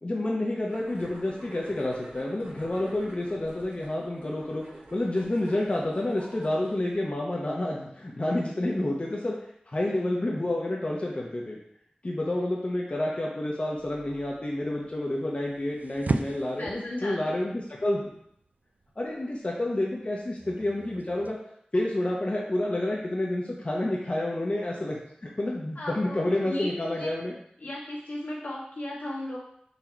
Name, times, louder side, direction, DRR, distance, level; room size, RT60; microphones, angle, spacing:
voice 1, 0.0-4.6 4.9-9.4 9.7-11.6 12.0-18.0 19.0-21.4 21.7-27.3, left 1 dB, 45° left, -3 dB, 0.7 m, -29 dB
sound 1, 0.6-6.9, right 1 dB, 90° right, 1.4 m, -47 dB
sound 2, 13.8-21.3, right 3 dB, 65° right, 0.3 m, -38 dB
voice 2, 16.4-17.3 25.7-26.2 26.4-27.1 27.6-29.4, left 1 dB, 80° left, -5 dB, 1.4 m, -36 dB
4.0 x 2.9 x 4.4 m, 0.72 s
wide cardioid pair, 55°, 3 cm